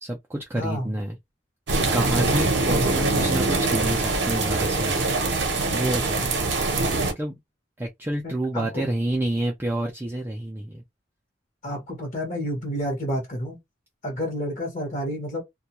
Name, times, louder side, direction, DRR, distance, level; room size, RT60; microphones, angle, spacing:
voice 1, 0.0-1.2 1.9-5.1 5.4-6.4 7.1-7.4 7.8-10.8, right 1 dB, 10° right, 0.3 m, -29 dB
voice 2, 0.6-0.9 8.5-8.8 11.6-13.6 14.0-15.4, equal, 40° left, 0.9 m, -29 dB
sound 1, 1.7-7.1, right 3 dB, 60° right, 0.7 m, -23 dB
2.3 x 2.2 x 2.8 m
head